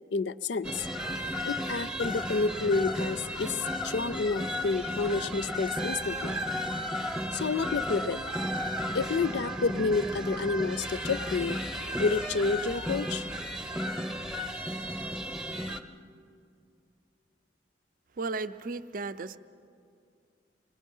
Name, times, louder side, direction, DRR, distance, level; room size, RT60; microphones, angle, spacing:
voice 1, 0.1-0.9 1.5-6.4 7.3-8.2 8.9-11.6 12.0-13.2, left 4 dB, 70° left, 16 dB, 0.4 m, -29 dB
sound 1, 0.6-15.8, equal, 5° right, 0.7 m, -34 dB
voice 2, 18.2-19.4, right 3 dB, 50° right, 13 dB, 0.5 m, -34 dB
25.0 x 19.5 x 5.4 m, 2.4 s
head